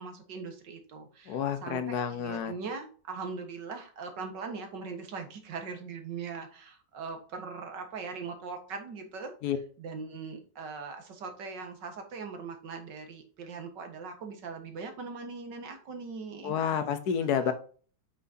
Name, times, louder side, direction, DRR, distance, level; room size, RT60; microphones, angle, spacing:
voice 1, 0.0-9.3 9.8-16.5 17.4-17.5, right 4 dB, 75° right, 5 dB, 2.1 m, -40 dB
voice 2, 1.3-2.5 9.4-9.6 16.4-17.5, left 8 dB, 65° left, 10 dB, 1.4 m, -29 dB
8.2 x 6.1 x 2.8 m, 0.41 s
omnidirectional pair, 1.9 m